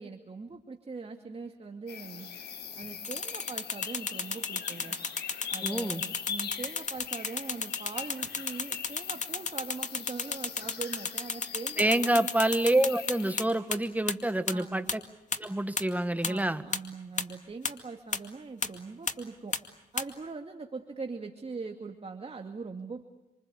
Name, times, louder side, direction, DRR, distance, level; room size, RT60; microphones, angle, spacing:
voice 1, 0.0-2.3 2.8-5.0 5.5-12.3 14.5-14.9 16.2-19.5 19.9-23.0, right 4 dB, 35° right, 4 dB, 2.4 m, -41 dB
sound 1, 1.9-13.5, left 7 dB, 90° left, 5.9 m, -42 dB
sound 2, 3.0-13.4 13.7-13.8 14.1-14.2 14.5-14.6 14.9-15.0 15.3-15.4 15.8-15.9 16.2-16.3 16.7-16.8 17.2-17.3 17.6-17.7 18.1-18.2 18.6-18.7 19.1-19.2 19.5-19.6 20.0-20.1, left 5 dB, 45° left, 2.3 m, -31 dB
voice 2, 5.6-6.0 11.8-15.0 15.4-16.6, right 1 dB, 10° right, 10 dB, 1.8 m, -27 dB
27.5 x 26.0 x 8.3 m, 0.91 s
cardioid pair, 70°, 17 cm